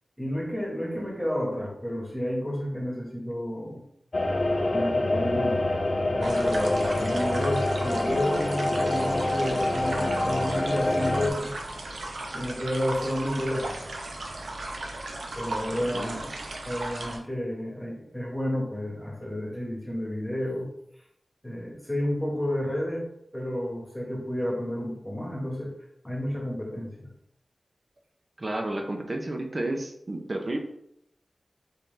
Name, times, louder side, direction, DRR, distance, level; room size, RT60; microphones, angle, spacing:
voice 1, 0.2-3.8 4.7-5.6 6.1-11.5 12.3-13.9 15.4-16.3 16.6-20.7 21.4-23.1 23.3-25.7 26.0-27.1, left 1 dB, 10° left, -2 dB, 1.4 m, -31 dB
sound 1, 4.1-11.3, left 2 dB, 45° left, 0.5 m, -26 dB
sound 2, 6.2-17.2, right 2 dB, 85° right, 0.7 m, -36 dB
voice 2, 15.8-16.2 28.4-30.6, right 1 dB, 40° right, 2 dB, 0.6 m, -31 dB
4.2 x 3.6 x 3.3 m, 0.75 s
wide cardioid pair, 90°, 0 cm